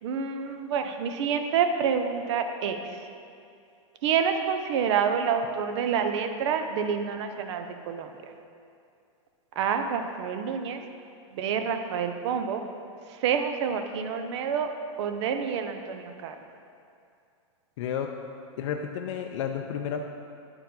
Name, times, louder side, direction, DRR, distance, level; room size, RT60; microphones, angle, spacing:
voice 1, 0.0-2.8 4.0-8.1 9.6-10.8 11.3-12.6 13.2-14.7 15.0-16.3, right 7 dB, 60° right, 6 dB, 0.7 m, -28 dB
voice 2, 17.8-18.1 18.6-20.1, left 8 dB, 65° left, 4 dB, 0.5 m, -31 dB
9.4 x 4.5 x 3.9 m, 2.4 s
hypercardioid pair, 140°, 17 cm